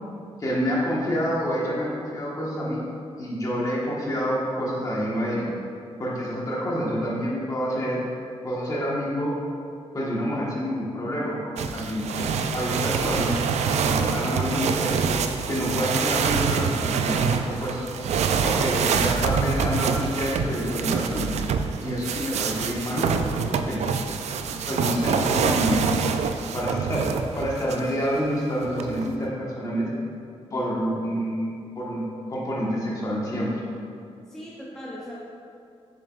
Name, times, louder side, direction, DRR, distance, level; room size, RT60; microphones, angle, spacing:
voice 1, 0.4-2.8 3.2-5.5 6.0-8.1 8.4-9.3 9.9-13.4 13.8-15.0 15.5-17.9 18.4-21.3 21.8-23.8 24.7-25.9 26.5-27.1 27.3-29.9 30.5-33.5, equal, 30° left, -5 dB, 1.4 m, -28 dB
sound 1, 11.6-27.9 28.6-29.3, right 6 dB, 90° right, 0.4 m, -26 dB
voice 2, 18.4-18.8 34.3-35.1, equal, 5° left, -7 dB, 0.7 m, -40 dB
6.9 x 6.8 x 2.5 m, 2.4 s
wide cardioid pair, 150°, 11 cm